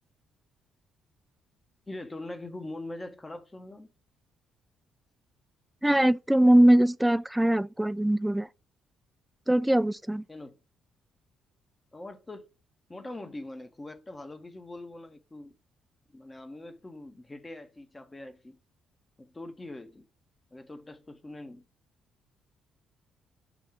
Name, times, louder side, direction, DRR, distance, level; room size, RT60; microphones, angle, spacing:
voice 1, 1.9-3.9 10.3-10.6 11.9-12.5 12.9-15.6 16.1-18.6 19.2-20.0 20.5-21.6, left 2 dB, 20° left, 1.1 m, -42 dB
voice 2, 5.8-8.5 9.5-10.2, right 1 dB, 5° right, 0.4 m, -22 dB
7.0 x 2.8 x 5.0 m
figure-of-eight pair, 45°, 0 cm